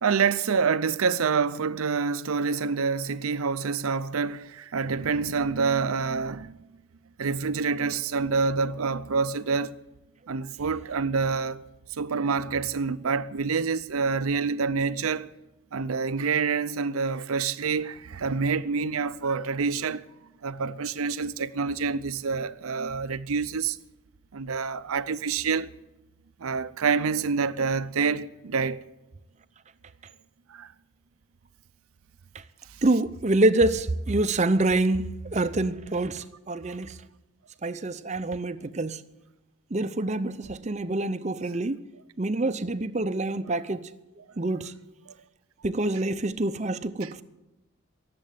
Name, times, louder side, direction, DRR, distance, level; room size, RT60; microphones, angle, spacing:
voice 1, 0.0-6.6 7.2-9.8 10.3-15.3 15.7-20.0 20.4-23.8 24.3-25.7 26.4-28.8 30.5-30.7 45.1-45.2 47.0-47.1, right 5 dB, 85° right, 0.6 m, -27 dB
voice 2, 32.8-37.0 37.6-39.0 39.7-41.8 42.2-43.9 44.4-44.7 45.6-47.2, right 2 dB, 30° right, 0.6 m, -26 dB
18.0 x 7.7 x 9.4 m
head